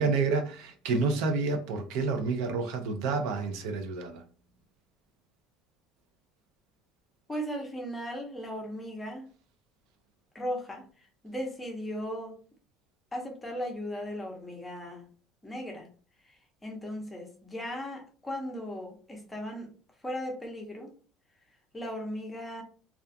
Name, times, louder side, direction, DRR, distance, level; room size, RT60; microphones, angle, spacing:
voice 1, 0.0-4.2, right 4 dB, 75° right, 0.5 m, -29 dB
voice 2, 7.3-9.3 10.3-12.4 13.1-15.1 15.4-15.9 16.2-19.7 20.0-20.9 21.7-22.6, equal, 10° left, 0.6 m, -37 dB
2.3 x 2.3 x 2.6 m
cardioid pair, 160°, 0 cm